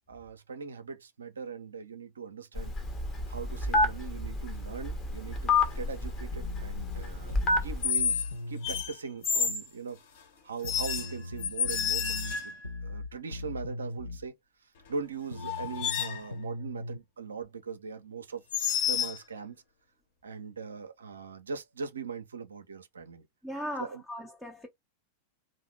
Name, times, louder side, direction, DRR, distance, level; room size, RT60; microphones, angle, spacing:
voice 1, 0.1-2.7 3.3-7.3 7.6-8.2 8.5-10.0 10.4-14.3 14.9-18.4 18.8-19.6 20.2-23.3 23.8-24.0, right 5 dB, 70° right, 0.4 m, -40 dB
Telephone, 2.6-7.9, left 2 dB, 30° left, 0.9 m, -29 dB
sound 1, 3.5-3.8 5.6-5.9 7.8-8.3 8.6-9.7 10.6-12.7 14.9-15.0 15.4-16.3 18.5-19.2, left 7 dB, 60° left, 1.1 m, -30 dB
sound 2, 6.3-8.9 10.6-14.3 15.3-17.0, left 2 dB, 80° left, 0.5 m, -39 dB
voice 2, 23.4-24.7, equal, 10° left, 0.5 m, -38 dB
2.7 x 2.1 x 3.2 m
figure-of-eight pair, 90°, 0 cm